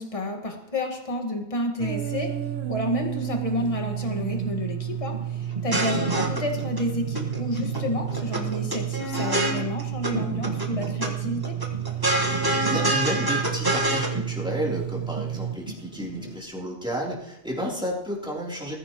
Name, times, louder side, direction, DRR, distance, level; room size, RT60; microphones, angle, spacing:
voice 1, 0.0-2.3 2.7-11.6, left 1 dB, 35° left, 2 dB, 1.9 m, -30 dB
sound 1, 1.8-15.5, right 11 dB, 75° right, 1.1 m, -31 dB
sound 2, 4.3-16.4, right 2 dB, 45° right, 2.2 m, -37 dB
sound 3, 5.5-6.8 7.2-7.8 8.1-10.1 10.4-11.1 11.4-14.1, right 1 dB, 20° right, 1.6 m, -26 dB
voice 2, 12.7-18.7, equal, 5° right, -4 dB, 3.5 m, -31 dB
20.0 x 15.0 x 3.1 m, 0.86 s
omnidirectional pair, 1.1 m